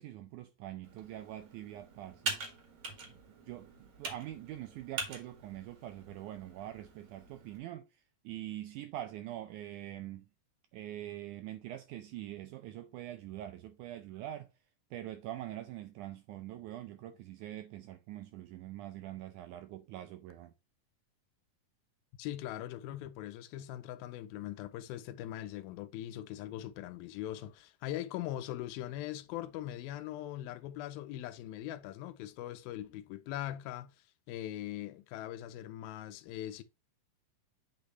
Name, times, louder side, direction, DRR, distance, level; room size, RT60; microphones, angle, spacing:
voice 1, 0.0-2.3 3.1-10.3 10.7-14.5 14.9-20.5, right 13 dB, 90° right, 1.7 m, -44 dB
Computer keyboard, 0.8-7.6, right 3 dB, 45° right, 2.7 m, -44 dB
voice 2, 22.2-34.0 34.3-36.6, left 13 dB, 90° left, 2.4 m, -41 dB
8.7 x 5.3 x 3.1 m
omnidirectional pair, 4.2 m